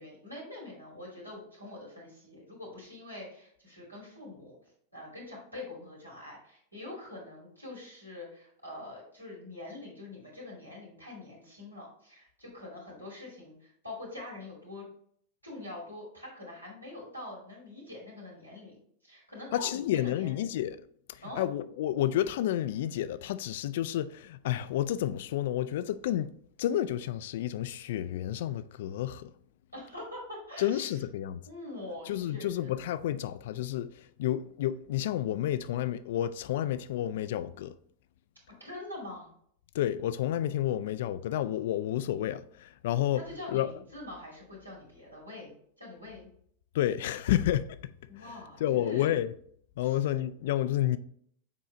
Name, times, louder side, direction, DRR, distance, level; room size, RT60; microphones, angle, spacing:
voice 1, 0.0-4.6 4.9-14.8 15.4-20.4 21.2-21.4 29.7-30.9 31.5-32.8 38.6-39.3 43.1-46.3 48.1-49.1 49.8-50.0, left 2 dB, 85° right, 2.6 m, -44 dB
voice 2, 19.5-20.8 21.1-26.3 26.6-29.3 30.6-31.4 32.1-37.7 39.7-43.2 43.5-43.7 46.7-47.9 48.2-48.3 48.6-49.3 49.8-51.0, left 12 dB, 55° left, 0.3 m, -30 dB
6.8 x 4.5 x 3.2 m
figure-of-eight pair, 90°, 0 cm